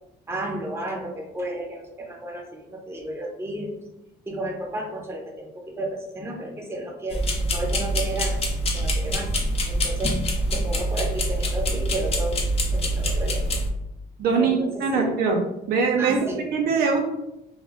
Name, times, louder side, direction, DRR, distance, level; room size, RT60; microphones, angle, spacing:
voice 1, 0.3-3.8 4.3-7.2 7.5-8.4 8.7-9.3 9.7-12.4 12.7-13.5 14.4-15.1 16.0-16.4, right 1 dB, 15° right, 0 dB, 0.7 m, -32 dB
sound 1, 7.1-13.7, equal, 35° left, 0.6 m, -25 dB
voice 2, 14.2-15.4 15.7-17.0, right 5 dB, 65° right, 2 dB, 0.5 m, -22 dB
2.3 x 2.1 x 3.5 m, 0.89 s
cardioid pair, 110°, 17 cm